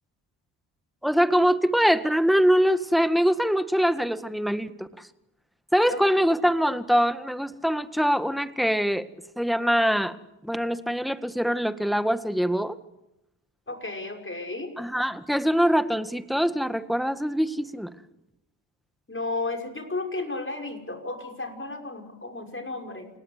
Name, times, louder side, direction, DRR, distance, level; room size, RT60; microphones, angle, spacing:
voice 1, 1.0-4.9 5.7-9.1 9.4-10.2 10.4-12.8 14.8-17.9, equal, ahead, 11 dB, 1.8 m, -23 dB
voice 2, 5.9-6.2 13.7-14.8 19.1-23.1, left 2 dB, 25° left, 3 dB, 6.0 m, -33 dB
28.5 x 18.5 x 8.2 m, 0.89 s
supercardioid pair, 45°, 49 cm